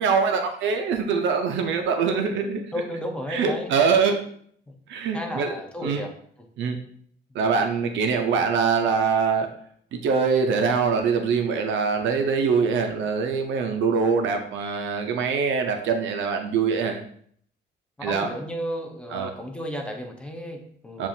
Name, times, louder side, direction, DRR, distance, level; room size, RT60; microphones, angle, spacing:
voice 1, 0.0-2.6 3.3-4.2 4.9-5.5 5.8-6.0 6.6-6.8 7.3-9.5 9.9-17.0 18.0-18.3 19.1-19.3 21.0-21.1, right 5 dB, 90° right, 5 dB, 0.6 m, -23 dB
voice 2, 2.7-3.7 5.1-6.1 6.4-6.5 7.3-7.5 18.0-21.1, equal, 5° left, 2 dB, 0.5 m, -33 dB
7.2 x 2.4 x 2.7 m, 0.62 s
cardioid pair, 170°, 19 cm